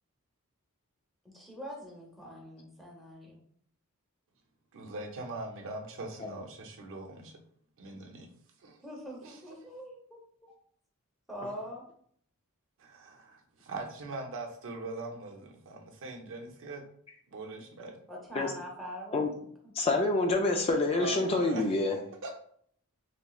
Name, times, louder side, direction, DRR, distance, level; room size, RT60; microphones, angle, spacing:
voice 1, 1.2-3.4 8.8-10.2 11.3-11.8 18.1-19.7, equal, ahead, -3 dB, 0.8 m, -43 dB
voice 2, 4.7-7.4 7.8-8.3 8.6-8.8 9.2-9.6 12.8-16.8 17.3-18.0 20.9-21.6 22.2-22.3, right 2 dB, 60° right, 1 dB, 0.6 m, -41 dB
voice 3, 19.7-22.0, left 2 dB, 25° left, 2 dB, 0.3 m, -27 dB
3.1 x 2.9 x 2.3 m, 0.62 s
head